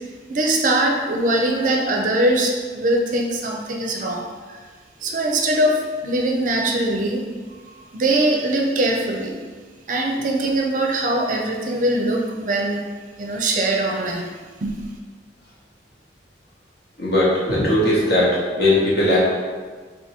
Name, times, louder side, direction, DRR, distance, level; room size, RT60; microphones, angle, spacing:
voice 1, 0.3-4.6 5.0-7.2 7.9-9.4 9.9-12.8 13.2-14.3 14.6-14.7, right 1 dB, 45° right, 1 dB, 0.5 m, -21 dB
voice 2, 17.0-19.2, left 1 dB, 65° left, -7 dB, 1.3 m, -18 dB
3.6 x 2.6 x 4.2 m, 1.5 s
head